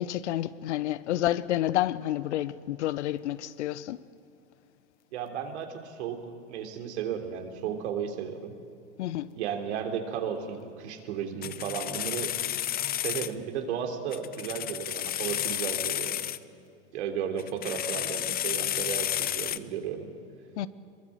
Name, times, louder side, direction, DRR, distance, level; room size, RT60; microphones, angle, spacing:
voice 1, 0.0-4.0 9.0-9.3 20.6-20.7, left 13 dB, 70° left, 0.9 m, -29 dB
voice 2, 5.1-6.2 6.5-8.5 9.3-12.3 12.9-16.2 16.9-20.1, right 7 dB, 70° right, 3.3 m, -34 dB
sound 1, 11.4-13.3 14.1-16.4 17.4-19.6, left 12 dB, 25° left, 0.7 m, -31 dB
22.5 x 22.0 x 7.7 m
hypercardioid pair, 105°, 35 cm